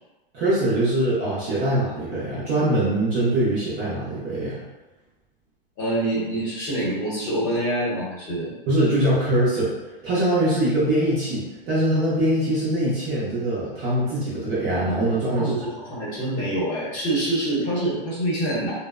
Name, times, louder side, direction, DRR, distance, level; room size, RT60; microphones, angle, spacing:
voice 1, 0.3-4.6 8.7-9.7 10.0-15.6, right 1 dB, 25° right, -9 dB, 0.5 m, -22 dB
voice 2, 5.8-8.5 15.3-18.7, right 1 dB, 25° left, -6 dB, 0.9 m, -26 dB
2.6 x 2.0 x 2.4 m, 1.1 s
hypercardioid pair, 145°, 29 cm